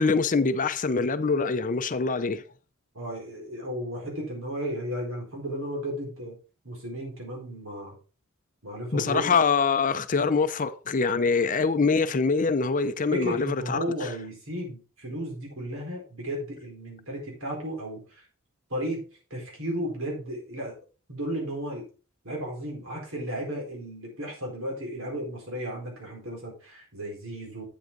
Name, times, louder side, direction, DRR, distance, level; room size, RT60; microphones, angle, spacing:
voice 1, 0.0-2.4 8.9-14.1, left 4 dB, 40° left, 0.5 m, -24 dB
voice 2, 2.9-6.4 6.6-8.0 8.6-9.2 13.1-18.2 18.7-19.0 19.3-20.8 21.1-21.8 22.2-27.6, equal, 70° right, 4.5 m, -34 dB
8.4 x 8.0 x 3.8 m
head